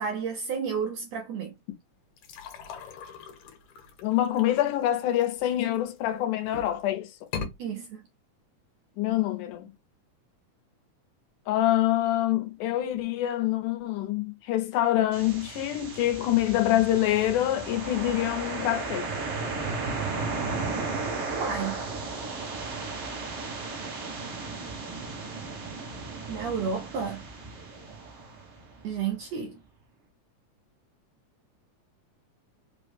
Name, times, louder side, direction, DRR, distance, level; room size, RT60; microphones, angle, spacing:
voice 1, 0.0-1.5 7.6-8.0 21.3-21.8 26.3-27.2 28.8-29.6, right 6 dB, 80° right, 1.5 m, -31 dB
sound 1, 2.2-6.0 6.4-6.8 7.2-7.5, left 5 dB, 75° left, 2.2 m, -40 dB
voice 2, 4.0-7.1 9.0-9.7 11.5-19.1, left 13 dB, 90° left, 2.2 m, -26 dB
sound 2, 15.1-29.0, right 3 dB, 60° right, 1.0 m, -35 dB
5.2 x 2.0 x 3.2 m
omnidirectional pair, 3.5 m